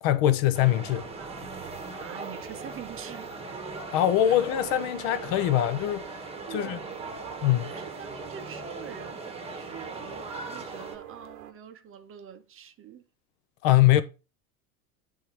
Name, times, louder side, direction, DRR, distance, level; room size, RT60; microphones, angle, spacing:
voice 1, 0.0-1.1 3.9-6.1 6.5-6.8 7.4-7.7 13.6-14.0, left 12 dB, 50° left, 0.8 m, -23 dB
sound 1, 0.5-11.0, right 3 dB, 15° right, 1.1 m, -39 dB
voice 2, 1.2-3.4 4.2-4.3 6.5-7.0 7.6-13.0, right 8 dB, 30° right, 0.7 m, -45 dB
sound 2, 1.6-11.5, right 11 dB, 75° right, 0.9 m, -47 dB
8.4 x 3.6 x 4.5 m
hypercardioid pair, 90°, 45 cm